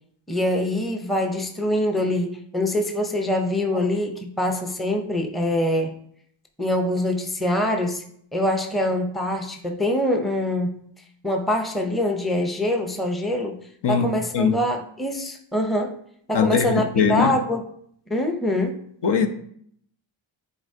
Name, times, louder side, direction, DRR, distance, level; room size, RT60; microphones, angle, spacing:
voice 1, 0.3-5.9 6.6-8.0 8.3-10.8 11.2-13.6 13.9-16.0 16.3-17.6 18.1-18.8, left 1 dB, ahead, 4 dB, 0.7 m, -24 dB
voice 2, 16.3-17.3 19.0-19.3, left 6 dB, 60° left, 7 dB, 0.8 m, -21 dB
9.8 x 4.0 x 2.8 m, 0.66 s
cardioid pair, 90°, 47 cm